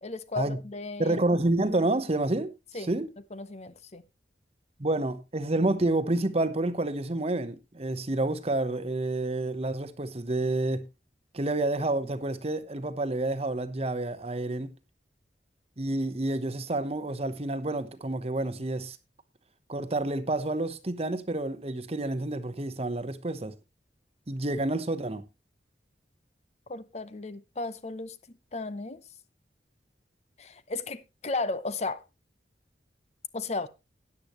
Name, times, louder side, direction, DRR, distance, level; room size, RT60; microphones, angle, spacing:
voice 1, 0.0-1.2 2.7-2.9 3.3-4.0 26.7-28.2 28.5-29.0 30.4-32.0 33.3-33.7, left 3 dB, 40° left, 0.7 m, -34 dB
voice 2, 1.0-2.5 2.9-3.1 4.8-10.8 11.3-14.7 15.8-19.0 19.7-23.5 24.3-25.2, right 2 dB, 35° right, 0.9 m, -29 dB
13.5 x 9.8 x 3.0 m
head